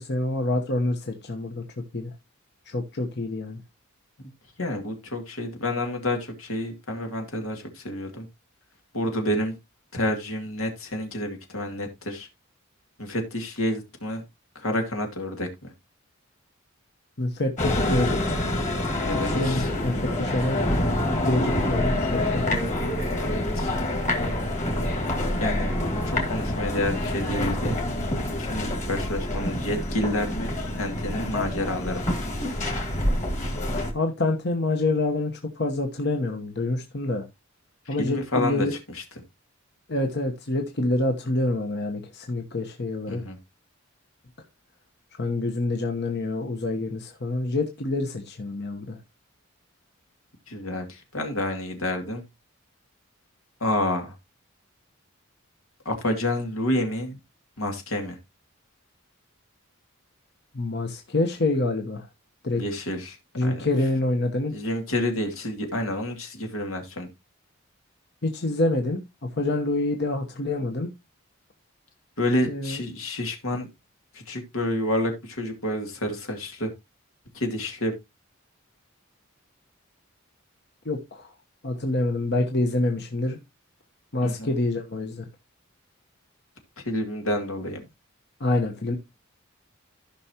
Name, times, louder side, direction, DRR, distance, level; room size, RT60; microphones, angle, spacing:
voice 1, 0.0-1.6 1.9-2.1 2.7-3.6 17.2-18.2 19.2-20.6 21.2-22.5 33.9-37.2 37.9-38.7 39.9-43.2 45.2-49.0 60.5-62.1 62.4-62.6 63.4-64.5 68.2-70.9 72.5-72.8 80.8-81.3 81.6-83.4 84.1-85.3 88.4-89.0, left 2 dB, 55° left, 1.1 m, -26 dB
voice 2, 4.6-8.3 8.9-9.5 9.9-12.3 13.0-14.2 14.6-15.7 18.8-19.7 23.2-23.7 25.4-27.8 28.4-32.0 37.9-38.7 38.9-39.0 43.1-43.4 50.5-52.2 53.6-54.1 55.8-57.2 57.6-58.2 62.6-63.2 63.4-63.7 64.5-67.1 72.2-73.7 74.1-76.7 77.3-77.9 84.2-84.5 86.9-87.8, left 1 dB, 85° left, 2.5 m, -29 dB
sound 1, 17.6-33.9, left 1 dB, 35° left, 2.6 m, -27 dB
15.0 x 5.7 x 2.9 m
head